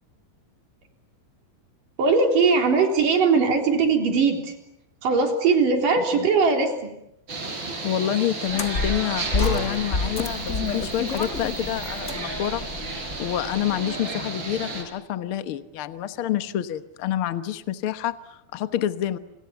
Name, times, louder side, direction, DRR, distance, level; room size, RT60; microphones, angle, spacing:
voice 1, 2.0-4.5 5.0-6.9, right 4 dB, 60° right, 4 dB, 5.2 m, -20 dB
sound 1, 7.3-14.8, right 3 dB, 30° right, 5.5 m, -33 dB
voice 2, 7.8-12.7 13.2-19.2, left 11 dB, 75° left, 11 dB, 1.2 m, -28 dB
sound 2, 8.5-13.7, left 3 dB, 40° left, 1.1 m, -29 dB
29.0 x 26.5 x 7.1 m, 0.81 s
omnidirectional pair, 4.3 m